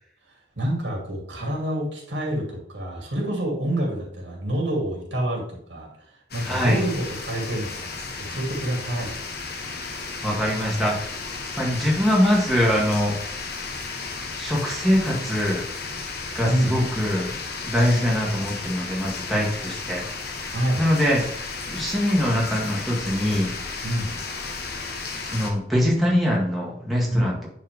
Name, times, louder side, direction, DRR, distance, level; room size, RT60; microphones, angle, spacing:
voice 1, 0.6-5.9 6.3-7.9 8.2-9.2 16.4-16.8 20.5-20.8 23.8-24.1 27.1-27.3, right 1 dB, 85° right, -1 dB, 2.7 m, -27 dB
sound 1, 6.3-25.5, left 4 dB, 60° left, 1.3 m, -34 dB
voice 2, 6.4-6.8 10.2-11.0 11.6-13.2 14.4-15.6 16.3-17.3 17.6-20.4 20.8-21.2 21.7-23.5 25.2-27.5, equal, ahead, -5 dB, 1.9 m, -23 dB
9.9 x 4.6 x 3.5 m, 0.67 s
head